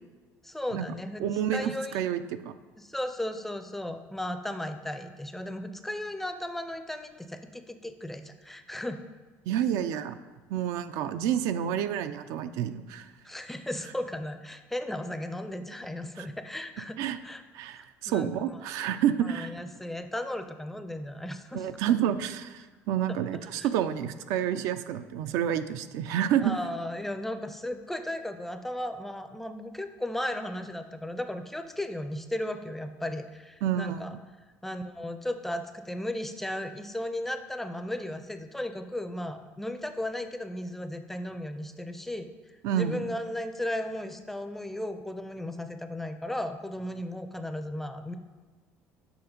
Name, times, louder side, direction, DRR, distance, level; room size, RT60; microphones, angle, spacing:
voice 1, 0.4-2.0 2.8-9.0 13.2-17.0 17.2-17.4 17.8-18.6 19.2-21.7 23.5-23.7 26.4-34.1 34.6-48.2, left 1 dB, 5° left, 8 dB, 0.4 m, -35 dB
voice 2, 1.2-2.5 9.5-10.1 10.5-13.1 17.0-17.2 17.5-19.5 21.5-26.6 33.6-34.0 42.6-43.0, right 10 dB, 75° right, 11 dB, 0.4 m, -29 dB
7.1 x 5.6 x 5.1 m, 1.3 s
cardioid pair, 145°, 5 cm